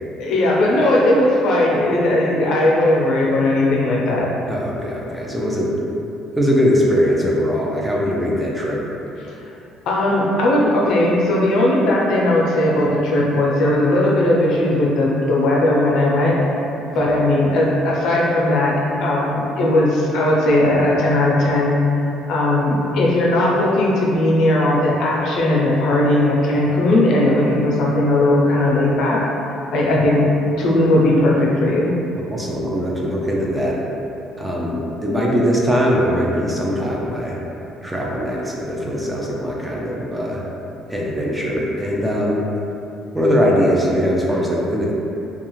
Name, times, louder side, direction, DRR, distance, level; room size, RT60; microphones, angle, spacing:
voice 1, 0.2-4.3 9.9-16.6 16.9-29.2 29.7-30.2 30.6-31.9, left 1 dB, 70° left, -4 dB, 0.5 m, -17 dB
voice 2, 4.5-5.7 6.4-8.8 16.9-17.2 32.3-33.8 34.4-37.4 37.8-40.4 40.9-42.4 43.1-44.9, equal, 10° right, -4 dB, 0.4 m, -21 dB
2.4 x 2.3 x 3.0 m, 2.8 s
cardioid pair, 125°, 0 cm